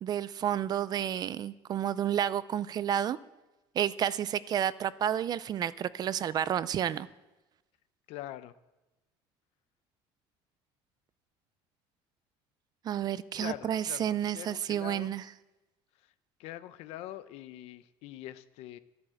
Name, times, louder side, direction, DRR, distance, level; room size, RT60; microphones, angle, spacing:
voice 1, 0.0-3.2 3.7-7.1 12.8-15.2, right 10 dB, 40° right, 17 dB, 0.5 m, -30 dB
voice 2, 8.1-8.5 13.3-15.1 16.4-18.8, left 14 dB, 70° left, 13 dB, 0.8 m, -43 dB
13.0 x 11.5 x 7.8 m, 1.1 s
cardioid pair, 135°, 11 cm